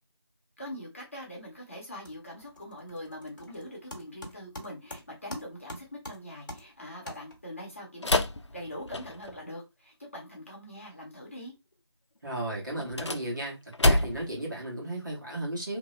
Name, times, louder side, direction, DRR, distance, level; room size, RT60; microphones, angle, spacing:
voice 1, 0.6-8.2 8.5-11.5, left 1 dB, 30° left, 0.9 m, -43 dB
sound 1, 1.2-1.6 1.8-7.7, left 1 dB, 45° left, 1.1 m, -46 dB
sound 2, 8.0-9.4 12.7-14.4, left 1 dB, 90° left, 0.5 m, -27 dB
voice 2, 12.2-13.6 13.8-15.8, right 1 dB, 45° right, 1.4 m, -34 dB
2.8 x 2.1 x 3.1 m
figure-of-eight pair, 170°, 14 cm